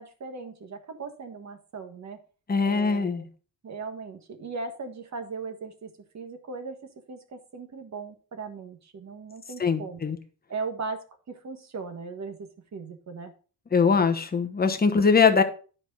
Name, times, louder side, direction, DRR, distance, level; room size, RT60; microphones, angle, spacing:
voice 1, 0.0-2.2 2.6-3.3 3.6-6.8 7.1-10.1 10.5-13.3, right 4 dB, 40° right, 7 dB, 1.5 m, -38 dB
voice 2, 2.5-3.2 9.6-10.2 13.7-15.4, left 5 dB, 20° left, 8 dB, 1.0 m, -22 dB
10.5 x 4.7 x 4.1 m, 0.38 s
cardioid pair, 115°, 41 cm